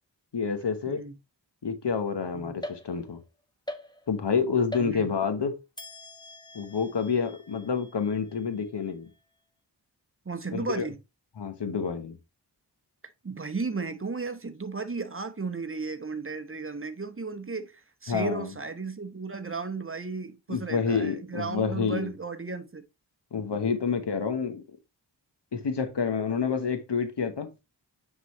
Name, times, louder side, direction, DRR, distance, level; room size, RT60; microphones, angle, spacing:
voice 1, 0.3-1.0 1.6-3.2 4.1-5.5 6.5-9.1 10.5-10.9 11.4-12.2 18.1-18.5 20.5-22.1 23.3-24.6 25.5-27.5, left 5 dB, 70° left, 1.1 m, -28 dB
voice 2, 0.9-1.2 2.3-2.6 4.8-5.1 10.2-11.0 13.2-22.8, right 4 dB, 30° right, 0.9 m, -34 dB
sound 1, 2.6-3.3 3.7-4.3 4.7-5.4 5.8-9.2, left 1 dB, 10° left, 1.0 m, -44 dB
9.3 x 3.9 x 3.0 m
wide cardioid pair, 70°, 43 cm